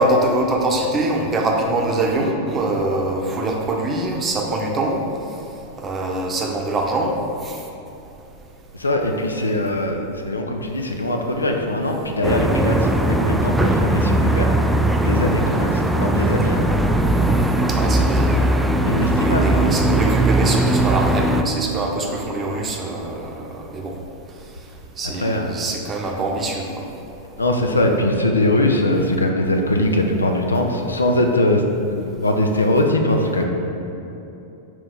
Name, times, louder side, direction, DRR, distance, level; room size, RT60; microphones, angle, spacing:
voice 1, 0.0-5.0 5.8-7.2 7.4-7.6 17.7-18.6 18.9-23.9 25.0-26.9, right 2 dB, 25° right, 1 dB, 0.8 m, -23 dB
voice 2, 8.7-14.5 15.0-16.7 18.8-19.7 25.0-25.5 27.4-31.6 31.9-33.5, left 1 dB, 80° left, 3 dB, 0.5 m, -21 dB
sound 1, 12.2-21.4, right 1 dB, 5° right, 0.3 m, -19 dB
6.2 x 4.5 x 3.8 m, 2.9 s
figure-of-eight pair, 90°, 0 cm